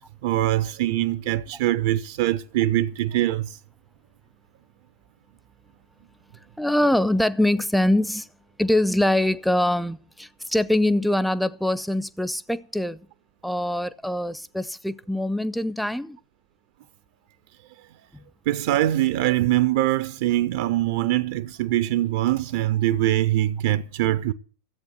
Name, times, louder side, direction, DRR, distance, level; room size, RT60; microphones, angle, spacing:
voice 1, 0.2-3.6 18.5-24.3, right 14 dB, 50° right, 0.6 m, -23 dB
voice 2, 6.6-8.3 8.6-13.0 13.4-16.2, left 1 dB, ahead, 0.6 m, -23 dB
14.0 x 8.2 x 8.0 m
figure-of-eight pair, 90°, 0 cm